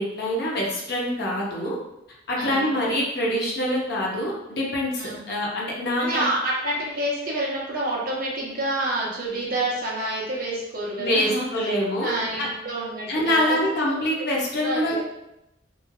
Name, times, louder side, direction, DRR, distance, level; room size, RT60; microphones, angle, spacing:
voice 1, 0.0-1.8 2.3-6.2 11.0-12.1 12.4-12.5 13.1-15.0, left 1 dB, 55° left, -3 dB, 0.7 m, -25 dB
voice 2, 2.4-2.7 5.0-5.2 6.0-11.5 12.0-14.0 14.6-15.0, right 1 dB, 45° right, -4 dB, 0.8 m, -28 dB
3.1 x 2.4 x 2.2 m, 0.86 s
head